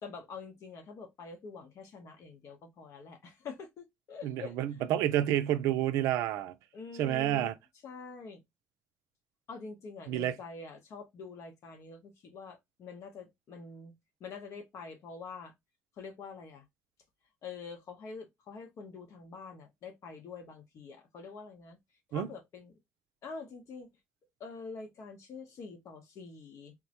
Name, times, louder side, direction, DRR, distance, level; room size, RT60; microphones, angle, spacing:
voice 1, 0.0-4.6 6.7-7.5 7.8-8.4 9.5-13.9 14.2-15.5 16.0-16.6 17.4-21.8 22.1-22.7 23.2-23.9 24.4-26.7, left 4 dB, 65° left, 0.9 m, -46 dB
voice 2, 4.2-6.5 7.0-7.5 10.1-10.3 22.1-22.3, right 12 dB, 80° right, 0.3 m, -29 dB
3.7 x 2.1 x 2.8 m
hypercardioid pair, 50°, 5 cm